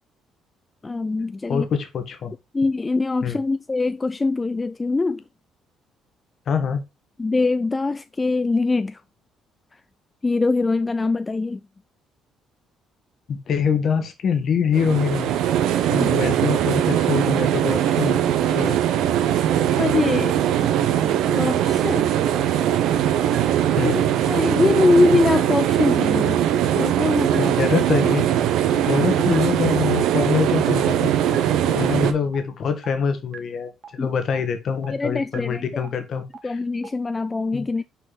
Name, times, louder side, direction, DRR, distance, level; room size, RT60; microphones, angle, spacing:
voice 1, 0.8-1.7 2.5-5.2 7.2-9.0 10.2-11.6 16.0-16.3 18.5-18.6 19.8-20.7 21.3-22.1 23.5-23.6 23.8-26.4 26.7-27.6 29.1-29.5 31.2-31.9 34.0-34.1 34.9-35.9 36.4-37.8, left 3 dB, 25° left, 0.4 m, -23 dB
voice 2, 1.5-2.3 3.2-3.4 6.5-6.8 13.3-15.4 15.9-18.8 23.8-24.0 27.4-28.3 28.7-31.1 31.4-36.6 37.5-37.7, left 6 dB, 60° left, 1.5 m, -25 dB
sound 1, 14.7-32.1, right 11 dB, 75° right, 0.8 m, -21 dB
sound 2, 21.8-21.9 22.3-22.4 22.8-22.9 23.3-23.4 23.8-23.9 24.3-24.4 24.8-24.9 25.3-25.4 25.8-25.9 26.3-26.4 26.8-26.9 27.3-27.4 27.8-27.9 28.3-28.4 28.8-28.9 29.3-29.4 29.8-29.9 30.3-30.4 30.8-30.9 31.3-31.4 31.8-31.9 32.3-32.4 32.8-32.9 33.3-33.4 33.8-33.9 34.3-34.4 34.8-34.9 35.3-35.4 35.8-35.9 36.3-36.4 36.8-36.9, right 7 dB, 50° right, 1.2 m, -38 dB
5.9 x 4.5 x 4.1 m
supercardioid pair, 65°, 0 cm